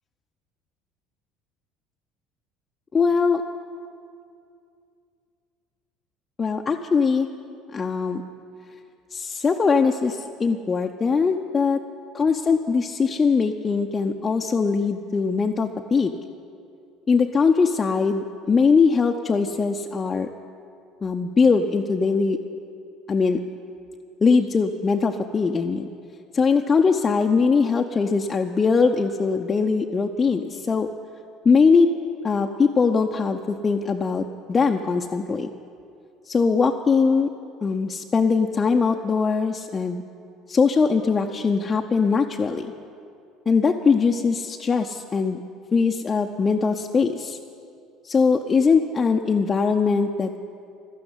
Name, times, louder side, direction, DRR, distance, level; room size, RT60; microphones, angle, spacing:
voice 1, 2.9-3.4 6.4-7.3 7.7-8.2 9.1-11.8 12.1-16.1 17.1-20.3 21.0-22.4 23.1-23.4 24.2-25.9 26.3-30.9 31.4-31.9 32.2-35.5 36.3-37.3 37.6-40.0 40.5-42.7 43.5-45.4 45.7-47.4 48.0-50.4, left 5 dB, 30° left, 3 dB, 0.7 m, -21 dB
12.0 x 9.6 x 9.6 m, 2.4 s
hypercardioid pair, 65°, 0 cm